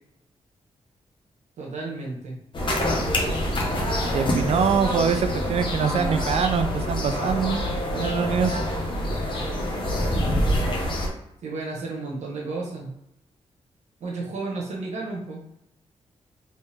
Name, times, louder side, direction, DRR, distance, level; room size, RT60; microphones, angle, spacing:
voice 1, 1.6-2.4 11.4-12.9 14.0-15.4, right 3 dB, 80° right, -1 dB, 1.1 m, -32 dB
sound 1, 2.5-11.1, left 1 dB, 45° left, 1.0 m, -26 dB
voice 2, 4.1-7.6 7.9-8.6, right 6 dB, 60° right, 8 dB, 0.4 m, -24 dB
3.1 x 2.8 x 3.4 m, 0.81 s
cardioid pair, 80°, 12 cm